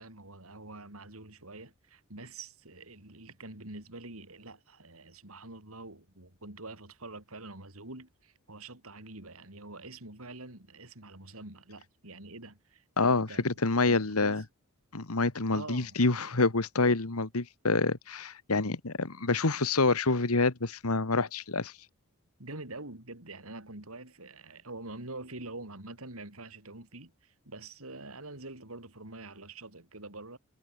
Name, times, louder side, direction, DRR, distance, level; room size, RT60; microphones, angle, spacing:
voice 1, 0.0-13.4 13.8-14.4 15.5-16.2 22.4-30.4, right 2 dB, 70° right, 4.4 m, -46 dB
voice 2, 13.0-14.4 14.9-21.7, left 3 dB, 80° left, 1.6 m, -27 dB
head